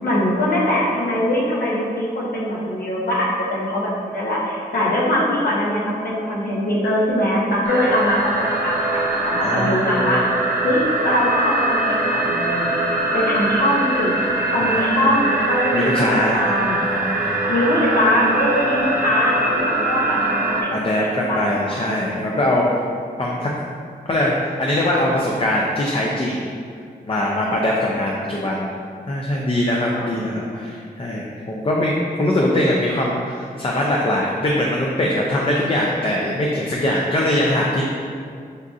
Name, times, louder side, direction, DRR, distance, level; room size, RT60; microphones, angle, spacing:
voice 1, 0.0-10.2 10.6-12.7 13.1-14.1 14.5-16.1 16.3-16.8 17.5-20.7 21.3-21.6 29.9-30.4, left 1 dB, 70° left, -5 dB, 0.9 m, -22 dB
sound 1, 7.6-20.6, right 2 dB, 60° right, 0.8 m, -22 dB
voice 2, 9.4-9.9 14.6-15.1 15.7-16.4 16.8-17.5 20.7-22.7 23.2-23.5 24.1-26.5 27.1-28.7 29.1-37.8, left 1 dB, 35° left, -3 dB, 0.5 m, -22 dB
6.5 x 2.5 x 2.4 m, 2.3 s
cardioid pair, 70°, 16 cm